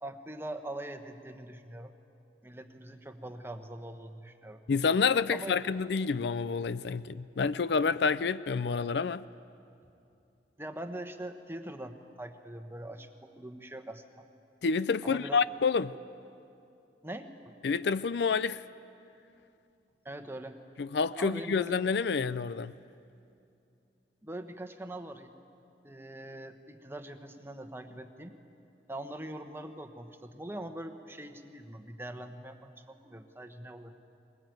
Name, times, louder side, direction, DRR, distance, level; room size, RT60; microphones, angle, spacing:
voice 1, 0.0-1.9 2.4-4.6 5.3-5.5 10.6-14.3 15.0-15.4 17.0-17.6 20.0-20.6 21.2-21.8 24.2-25.3 25.8-28.4 28.9-33.9, right 1 dB, 15° right, 1.1 m, -42 dB
voice 2, 4.7-9.2 14.6-15.9 17.6-18.6 20.8-22.7, left 5 dB, 65° left, 0.4 m, -28 dB
21.5 x 21.0 x 9.3 m
head